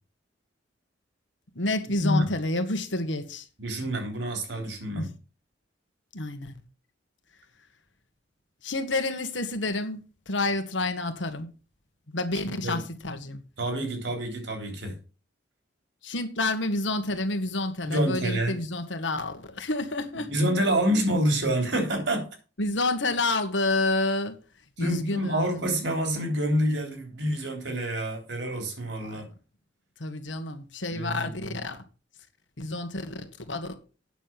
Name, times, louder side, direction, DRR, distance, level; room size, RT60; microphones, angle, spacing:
voice 1, 1.5-3.5 5.0-5.1 6.1-6.6 8.6-11.5 12.1-13.4 16.0-20.3 22.6-24.4 24.8-25.7 29.0-29.3 30.0-31.8 32.6-33.7, left 2 dB, 85° left, 1.7 m, -29 dB
voice 2, 3.6-5.1 12.4-12.8 13.6-14.9 17.8-18.5 20.3-22.3 24.8-29.2 30.9-31.6, right 1 dB, 70° right, 3.5 m, -27 dB
9.0 x 6.8 x 5.9 m
head